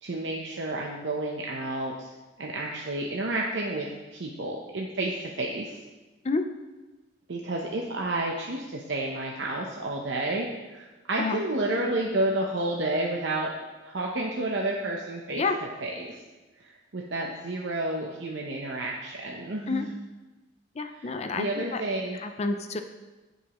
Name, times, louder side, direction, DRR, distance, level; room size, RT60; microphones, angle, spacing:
voice 1, 0.0-2.1 2.4-3.9 4.1-5.8 7.3-13.5 13.8-15.4 15.8-16.1 16.7-19.9 20.9-22.2, right 2 dB, 70° right, -1 dB, 0.8 m, -30 dB
voice 2, 20.8-21.8 22.1-22.8, left 3 dB, 35° left, 7 dB, 0.5 m, -29 dB
14.5 x 5.4 x 3.0 m, 1.2 s
head